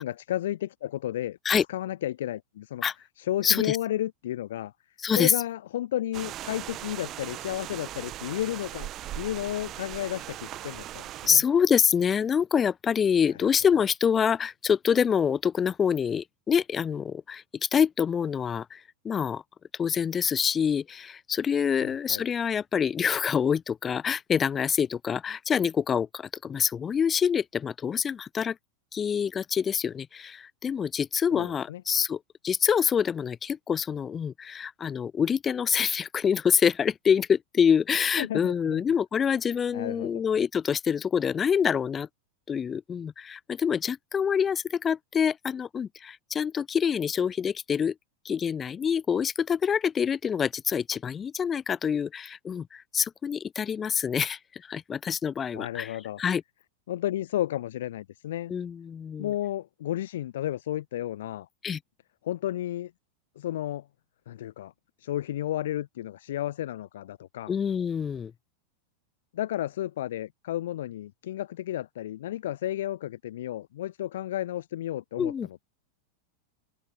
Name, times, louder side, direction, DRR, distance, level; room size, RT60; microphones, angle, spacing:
voice 1, 0.0-1.4 1.7-2.8 3.2-4.7 5.1-8.9 9.1-11.4 13.7-13.8 21.8-22.2 31.3-31.8 38.2-38.8 39.7-40.2 55.5-56.2 56.9-58.5 59.2-61.5 62.2-62.9 63.4-63.9 64.3-64.7 65.0-67.5 69.3-75.7, left 13 dB, 60° left, 0.7 m, -32 dB
voice 2, 3.4-3.8 5.0-5.3 11.3-19.4 19.8-28.6 28.9-32.2 32.4-42.1 42.5-47.9 48.2-56.4 58.5-59.3 61.6-61.8 67.5-68.3 75.2-75.5, left 7 dB, 20° left, 0.4 m, -26 dB
sound 1, 6.1-11.3, right 13 dB, 35° right, 1.1 m, -39 dB
open air
figure-of-eight pair, 90°, 0 cm